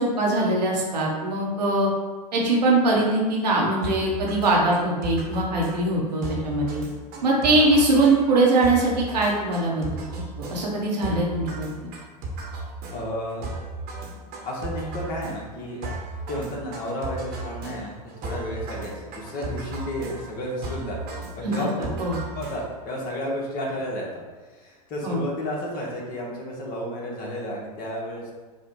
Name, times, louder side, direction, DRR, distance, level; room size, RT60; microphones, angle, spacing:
voice 1, 0.0-1.9 2.3-6.8 7.2-9.9 10.4-11.7 21.4-21.7 22.0-22.2 25.0-25.2, right 2 dB, 85° right, -3 dB, 1.3 m, -22 dB
sound 1, 3.8-22.9, right 2 dB, 50° right, 1.2 m, -36 dB
voice 2, 12.9-13.5 14.4-15.9 16.3-21.0 21.4-22.1 22.3-24.1 24.5-28.3, equal, 45° left, -2 dB, 1.5 m, -32 dB
4.8 x 2.4 x 4.4 m, 1.3 s
hypercardioid pair, 95°, 20 cm